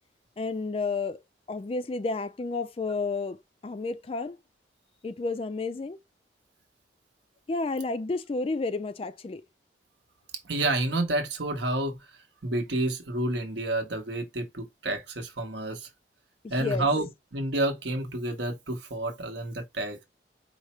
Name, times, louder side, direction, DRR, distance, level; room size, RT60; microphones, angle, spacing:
voice 1, 0.4-1.2 1.5-3.4 3.6-4.4 5.0-6.0 7.5-9.4 16.4-16.9, left 3 dB, 30° left, 0.3 m, -31 dB
voice 2, 10.4-12.0 12.4-15.9 16.5-20.0, right 2 dB, 70° right, 1.1 m, -29 dB
4.8 x 2.0 x 4.2 m
head